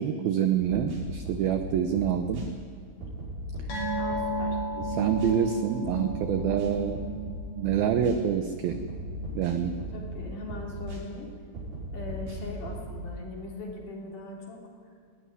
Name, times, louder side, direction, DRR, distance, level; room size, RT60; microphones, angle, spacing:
voice 1, 0.0-2.4 4.8-7.0 7.5-8.8 9.3-9.8, right 8 dB, 85° right, 7 dB, 2.1 m, -26 dB
sound 1, 0.6-1.6 1.9-2.5 3.0-4.5 4.8-5.3 5.9-7.3 7.6-8.2 8.7-10.2 10.5-11.0 11.5-12.9, right 1 dB, 65° right, 7.6 m, -38 dB
sound 2, 3.7-10.5 10.8-11.0 11.4-11.5, right 2 dB, 60° left, 7.5 m, -35 dB
voice 2, 4.0-4.6 9.9-11.3 11.9-14.6, left 2 dB, 45° left, -1 dB, 4.1 m, -40 dB
19.5 x 18.0 x 9.9 m, 2.2 s
omnidirectional pair, 5.6 m